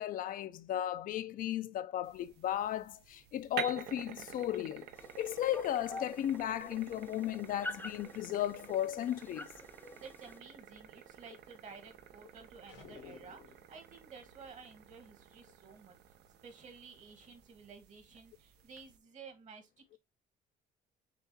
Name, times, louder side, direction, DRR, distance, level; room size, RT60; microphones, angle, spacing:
voice 1, 0.0-4.9 5.2-9.5, left 12 dB, 55° left, 0.4 m, -35 dB
sound 1, 2.0-19.0, right 9 dB, 80° right, 0.6 m, -50 dB
sound 2, 5.0-10.4, left 2 dB, 10° left, 0.6 m, -48 dB
voice 2, 10.0-16.1 16.4-20.0, right 5 dB, 45° right, 1.4 m, -53 dB
sound 3, 12.7-13.7, left 7 dB, 85° left, 1.1 m, -53 dB
6.6 x 2.4 x 2.7 m
cardioid pair, 110°, 17 cm